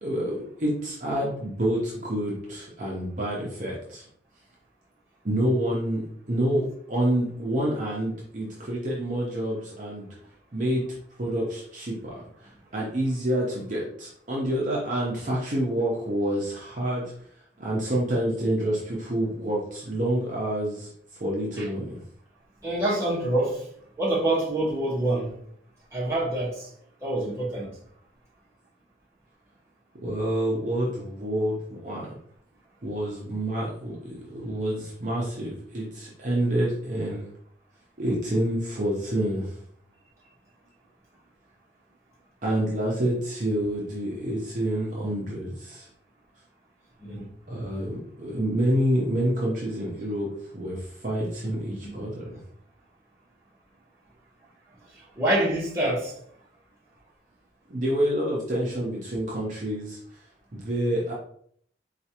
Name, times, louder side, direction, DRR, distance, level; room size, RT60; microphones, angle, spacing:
voice 1, 0.0-4.1 5.2-10.1 10.5-10.8 11.2-17.1 17.6-20.9 21.2-22.0 30.0-32.1 32.8-37.3 38.0-39.6 42.4-45.9 47.5-52.3 57.7-60.0 60.5-61.1, right 1 dB, 45° right, 0.7 m, -28 dB
voice 2, 22.6-23.7 24.0-25.3 25.9-26.7 27.0-27.8 47.0-47.3 51.8-51.9 54.9-56.1, right 1 dB, 15° right, 1.1 m, -26 dB
4.3 x 2.4 x 2.8 m
head